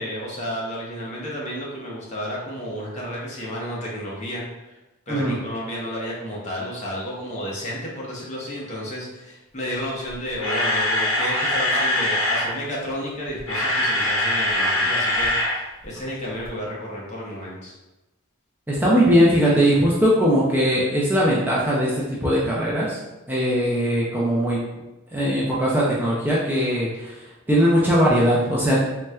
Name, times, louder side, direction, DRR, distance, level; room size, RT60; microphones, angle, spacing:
voice 1, 0.0-4.8 5.1-17.7, equal, 35° left, -4 dB, 0.7 m, -32 dB
Camera, 10.1-12.5 13.3-15.6 15.8-16.0 16.4-16.5, left 1 dB, 70° left, 0.8 m, -22 dB
voice 2, 18.7-23.0 23.3-24.6 25.1-27.1 27.5-28.8, equal, 10° right, -6 dB, 0.4 m, -20 dB
4.1 x 2.1 x 2.3 m, 1.0 s
head